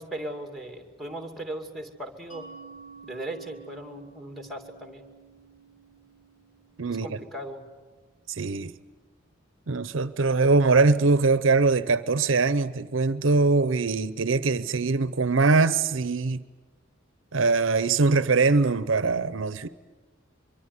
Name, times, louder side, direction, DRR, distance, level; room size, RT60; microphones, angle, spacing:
voice 1, 0.0-2.5 3.0-5.1 6.9-7.7, right 1 dB, ahead, 2.6 m, -38 dB
Mallet percussion, 2.3-7.7, right 5 dB, 80° left, 5.9 m, -50 dB
voice 2, 6.8-7.2 8.3-8.7 9.7-16.4 17.3-19.7, right 3 dB, 70° right, 0.7 m, -22 dB
24.5 x 23.5 x 9.6 m
head